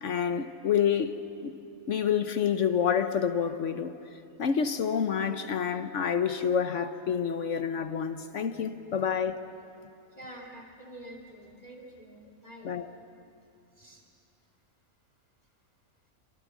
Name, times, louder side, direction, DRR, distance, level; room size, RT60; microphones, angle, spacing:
voice 1, 0.0-1.6 1.9-9.4 12.6-12.9, left 7 dB, 65° left, 1.2 m, -28 dB
voice 2, 10.1-12.7 13.7-14.0, right 1 dB, 30° left, 2.4 m, -47 dB
27.0 x 26.5 x 7.3 m
omnidirectional pair, 1.4 m